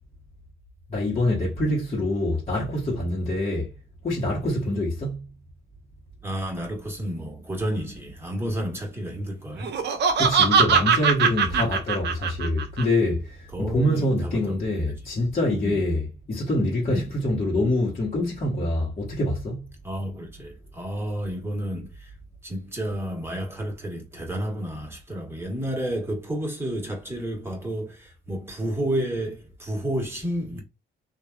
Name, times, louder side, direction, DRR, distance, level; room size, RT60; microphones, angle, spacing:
voice 1, 0.9-3.7 4.0-5.2 10.2-19.6, left 1 dB, 35° left, 1.2 m, -25 dB
voice 2, 6.2-9.8 11.5-11.7 13.5-14.8 15.4-15.8 16.9-17.1 19.8-22.1 22.4-30.6, right 1 dB, 10° right, 1.3 m, -31 dB
Laughter, 9.6-12.8, right 6 dB, 60° right, 0.6 m, -21 dB
3.2 x 2.4 x 2.3 m
cardioid pair, 90°, 20 cm